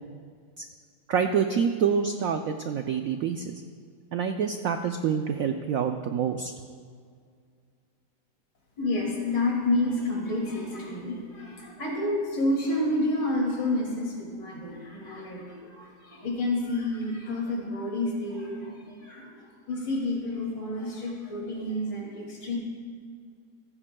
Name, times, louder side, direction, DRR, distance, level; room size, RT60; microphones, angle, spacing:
voice 1, 1.1-3.6 4.1-6.5, right 7 dB, 85° right, 6 dB, 0.7 m, -27 dB
voice 2, 8.8-22.6, left 2 dB, 65° left, -2 dB, 3.1 m, -29 dB
17.0 x 15.0 x 2.3 m, 2.1 s
omnidirectional pair, 2.1 m